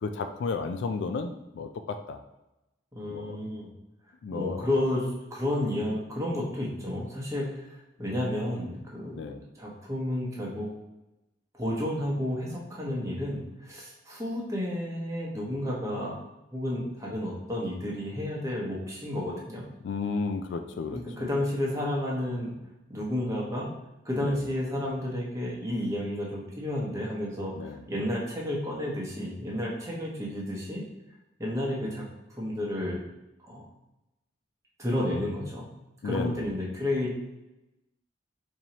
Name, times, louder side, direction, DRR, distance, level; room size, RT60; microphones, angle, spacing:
voice 1, 0.0-2.2 3.1-3.4 4.2-4.7 9.2-9.4 19.8-21.0 24.2-24.4 27.5-27.8 36.0-36.5, left 4 dB, 65° left, 8 dB, 0.3 m, -33 dB
voice 2, 2.9-3.7 4.3-9.3 9.6-10.7 11.5-16.2 16.5-19.6 20.9-22.5 22.9-23.7 24.0-30.8 31.4-32.1 32.4-33.0 33.4-33.6 34.8-35.7 36.0-37.1, left 1 dB, 15° right, -4 dB, 0.9 m, -31 dB
4.5 x 2.8 x 2.9 m, 0.95 s
head